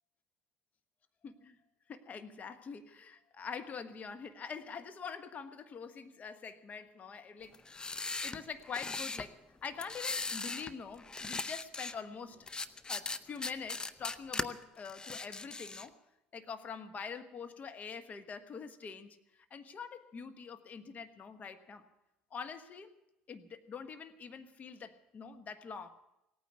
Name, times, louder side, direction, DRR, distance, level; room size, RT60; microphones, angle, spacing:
voice 1, 1.2-1.6 1.9-7.6 7.9-12.5 12.9-15.9 16.3-21.8 22.3-22.9 23.3-25.9, left 6 dB, 40° left, 9 dB, 1.3 m, -45 dB
sound 1, 7.5-9.3 9.8-10.7 11.0-11.9 12.5-14.5 14.8-15.9, left 3 dB, 20° left, 0.7 m, -39 dB
17.5 x 9.4 x 8.0 m, 0.90 s
hypercardioid pair, 70°, 4 cm